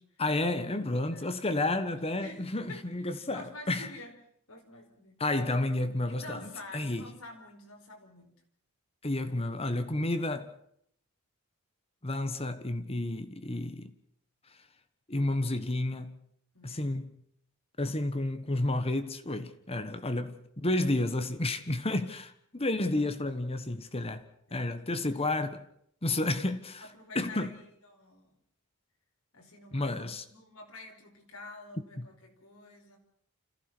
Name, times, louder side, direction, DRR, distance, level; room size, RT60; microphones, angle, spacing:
voice 1, 0.2-3.9 5.2-7.1 9.0-10.5 12.0-13.9 15.1-16.2 16.6-17.1 17.8-25.6 26.0-26.8 27.1-27.5 29.7-30.2 32.0-32.1, left 2 dB, 25° left, 1.3 m, -31 dB
voice 2, 1.1-1.4 1.9-4.2 4.5-5.2 6.1-8.3 16.5-17.0 20.1-20.3 22.5-22.7 24.5-24.8 26.8-28.4 29.3-33.0, left 2 dB, 70° left, 4.9 m, -49 dB
30.0 x 15.0 x 6.2 m
head